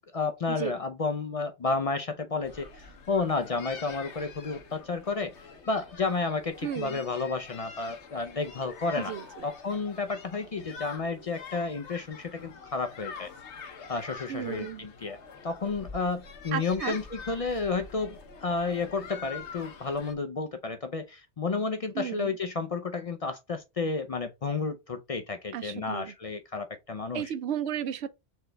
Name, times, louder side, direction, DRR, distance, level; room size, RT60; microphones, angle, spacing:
voice 1, 0.1-5.3 5.7-9.1 9.4-13.3 13.9-15.2 15.4-27.3, left 4 dB, 55° left, 0.4 m, -31 dB
sound 1, 2.4-20.1, left 5 dB, 75° left, 1.2 m, -45 dB
voice 2, 6.6-7.0 9.0-9.5 14.3-14.9 16.5-17.0 21.9-22.3 25.5-26.1 27.1-28.1, right 9 dB, 70° right, 0.8 m, -34 dB
4.4 x 3.3 x 3.2 m
omnidirectional pair, 1.2 m